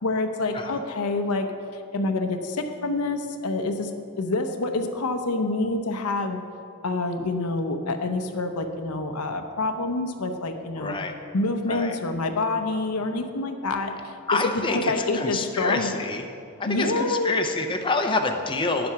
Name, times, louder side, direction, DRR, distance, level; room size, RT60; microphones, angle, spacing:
voice 1, 0.0-3.9 4.2-6.4 6.8-11.0 11.3-15.9 16.7-17.4, left 2 dB, 90° left, 6 dB, 0.8 m, -27 dB
voice 2, 10.8-11.1 11.7-11.9 14.3-16.2 16.6-18.9, left 3 dB, 20° left, 4 dB, 0.6 m, -27 dB
10.0 x 7.8 x 5.8 m, 2.5 s
head